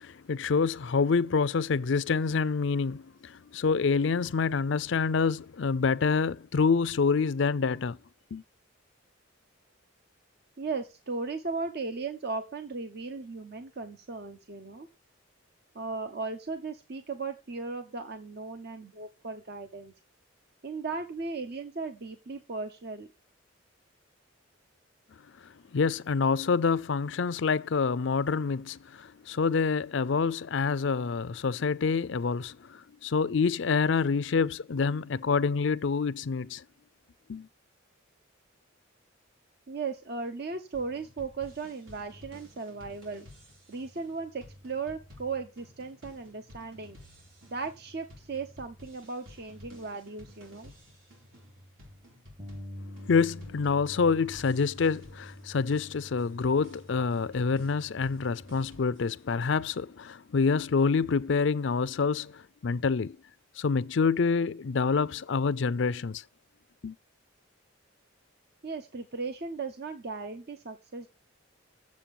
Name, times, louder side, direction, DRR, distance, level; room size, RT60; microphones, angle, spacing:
voice 1, 0.0-8.0 8.3-8.4 25.4-36.6 37.3-37.5 53.0-63.2 63.6-66.2 66.8-67.0, left 5 dB, 60° left, 0.5 m, -27 dB
voice 2, 10.6-14.9 15.7-19.9 20.6-23.1 39.7-43.3 43.7-47.0 47.5-50.7 68.6-71.1, right 4 dB, 50° right, 0.9 m, -37 dB
sound 1, 40.7-59.5, left 1 dB, 85° right, 4.5 m, -53 dB
Bass guitar, 52.4-58.6, equal, 30° right, 1.4 m, -46 dB
7.5 x 7.4 x 6.9 m
head